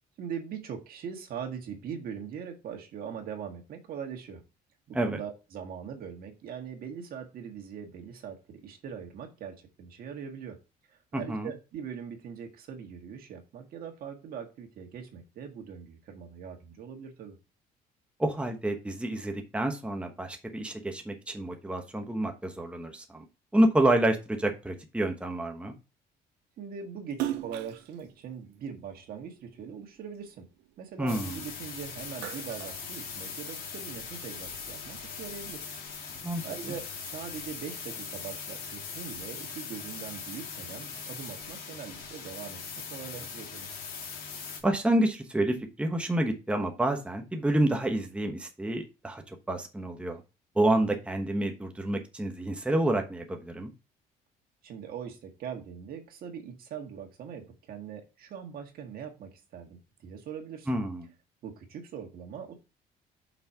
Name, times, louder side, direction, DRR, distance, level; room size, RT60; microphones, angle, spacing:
voice 1, 0.2-4.4 4.9-10.6 10.9-17.4 26.6-30.5 30.8-35.7 36.2-42.6 42.9-43.7 54.6-60.7 61.4-62.6, right 7 dB, 60° right, 1.8 m, -41 dB
voice 2, 11.1-11.5 18.2-23.2 23.5-25.7 31.0-31.4 36.2-36.4 44.6-50.2 50.5-53.7 60.7-61.1, right 1 dB, 5° right, 1.1 m, -28 dB
Splash splatter, 27.1-29.7 30.1-31.6 31.9-33.6, right 14 dB, 90° right, 0.6 m, -38 dB
sound 1, 31.1-44.6, left 5 dB, 60° left, 2.8 m, -40 dB
6.0 x 4.2 x 5.7 m
cardioid pair, 110°, 17 cm